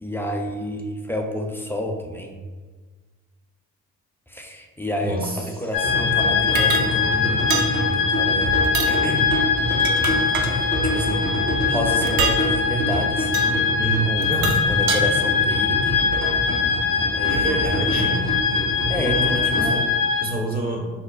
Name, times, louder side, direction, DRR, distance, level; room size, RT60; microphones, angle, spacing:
voice 1, 0.0-2.4 4.3-8.6 8.9-9.3 10.4-11.3 11.7-13.6 14.0-16.0 17.2-18.1 18.9-19.8, equal, 5° left, 1 dB, 0.3 m, -30 dB
voice 2, 5.0-5.7 13.8-14.6 17.3-18.2 18.9-20.8, right 2 dB, 20° right, 0 dB, 0.9 m, -28 dB
sound 1, 5.7-20.3, left 5 dB, 85° left, 0.6 m, -22 dB
sound 2, 5.8-19.7, equal, 90° right, 1.1 m, -27 dB
sound 3, 6.6-6.9 7.5-7.7 8.6-9.0 9.6-10.5 12.1-12.4 13.3-13.5 14.2-15.0, right 7 dB, 60° right, 0.5 m, -26 dB
5.3 x 2.1 x 2.3 m, 1.4 s
hypercardioid pair, 50°, 41 cm